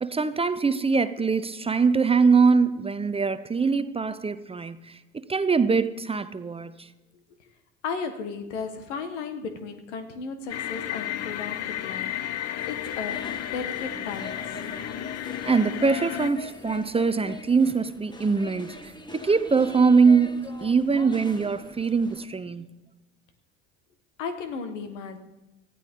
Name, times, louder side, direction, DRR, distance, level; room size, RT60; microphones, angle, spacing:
voice 1, 0.0-6.9 15.4-22.7, right 5 dB, 15° right, 0.6 m, -23 dB
voice 2, 7.8-12.4 12.7-14.5 24.2-25.2, left 5 dB, 85° left, 1.7 m, -35 dB
sound 1, 10.5-16.3, left 12 dB, 45° left, 0.8 m, -33 dB
sound 2, 12.6-22.3, left 2 dB, 10° left, 1.4 m, -43 dB
18.5 x 14.0 x 3.8 m
hypercardioid pair, 75°, 35 cm